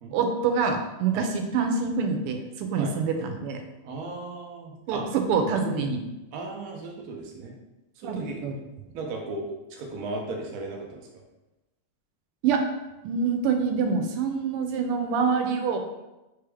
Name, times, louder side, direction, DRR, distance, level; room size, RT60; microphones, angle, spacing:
voice 1, 0.1-3.6 4.9-6.0 8.0-8.6 12.4-12.6 13.0-15.8, right 5 dB, 90° right, 5 dB, 1.5 m, -26 dB
voice 2, 3.8-5.0 5.7-5.9 6.3-7.5 8.0-8.5 8.9-11.0, right 2 dB, 65° right, 0 dB, 0.9 m, -36 dB
3.8 x 3.4 x 3.4 m, 0.99 s
omnidirectional pair, 2.4 m